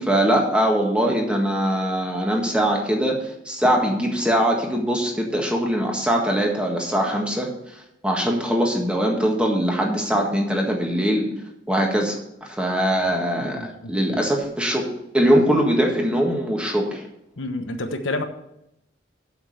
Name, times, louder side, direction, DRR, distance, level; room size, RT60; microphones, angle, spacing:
voice 1, 0.0-11.3 11.7-14.9 15.1-17.1, equal, 5° right, 0 dB, 1.6 m, -22 dB
voice 2, 13.4-14.2 17.4-18.2, left 2 dB, 85° left, 6 dB, 1.1 m, -30 dB
7.5 x 7.1 x 7.9 m, 0.83 s
head